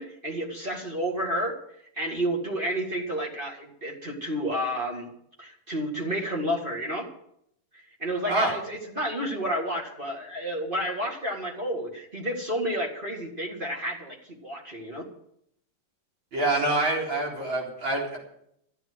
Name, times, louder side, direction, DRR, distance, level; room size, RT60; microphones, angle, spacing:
voice 1, 0.0-1.6 2.0-5.1 5.4-7.1 8.0-15.1, equal, 25° right, 0 dB, 1.9 m, -30 dB
voice 2, 16.3-18.2, right 2 dB, 60° right, -3 dB, 4.8 m, -26 dB
13.5 x 9.1 x 7.8 m, 0.73 s
omnidirectional pair, 2.4 m